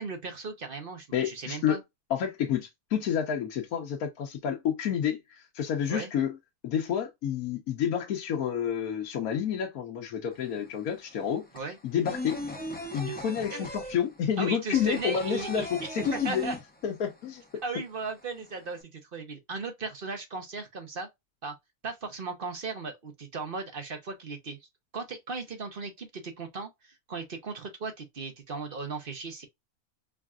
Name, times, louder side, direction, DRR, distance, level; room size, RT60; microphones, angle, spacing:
voice 1, 0.0-1.8 5.9-6.1 11.5-11.8 13.1-13.2 13.5-13.7 14.4-15.7 16.1-16.6 17.6-21.1 21.4-21.5 21.8-24.6 24.9-29.5, right 4 dB, 40° right, 1.0 m, -37 dB
voice 2, 1.1-1.8 2.1-6.3 6.6-11.4 11.8-12.4 12.9-16.5 16.8-17.4, left 8 dB, 75° left, 1.2 m, -29 dB
sound 1, 10.3-10.4 10.7-17.3 17.5-17.6 17.9-18.7, left 1 dB, 10° left, 0.6 m, -38 dB
4.8 x 2.5 x 2.3 m
omnidirectional pair, 1.6 m